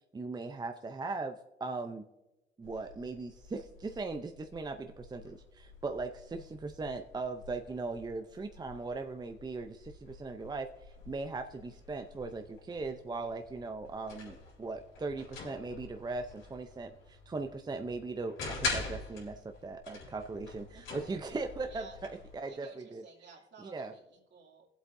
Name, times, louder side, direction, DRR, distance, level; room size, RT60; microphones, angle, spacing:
voice 1, 0.1-2.0 2.6-21.9 22.3-23.0 23.6-23.9, right 3 dB, 20° right, 6 dB, 0.6 m, -39 dB
sound 1, 2.6-22.4, left 3 dB, 85° left, 3.9 m, -45 dB
voice 2, 20.7-21.2 21.6-22.0 22.4-24.7, right 5 dB, 60° right, -1 dB, 2.7 m, -54 dB
21.5 x 8.0 x 2.6 m, 1.0 s
cardioid pair, 90°, 20 cm